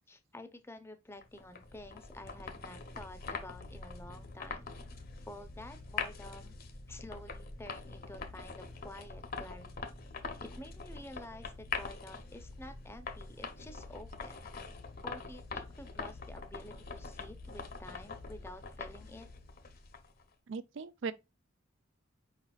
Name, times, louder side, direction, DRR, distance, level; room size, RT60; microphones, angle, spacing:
voice 1, 0.0-4.7 5.3-6.5 6.9-10.0 10.4-14.5 15.0-19.3, left 1 dB, 10° left, 0.6 m, -50 dB
sound 1, 1.2-20.2, left 4 dB, 50° left, 0.8 m, -44 dB
voice 2, 20.5-21.1, right 5 dB, 65° right, 0.4 m, -38 dB
5.0 x 4.2 x 2.3 m
head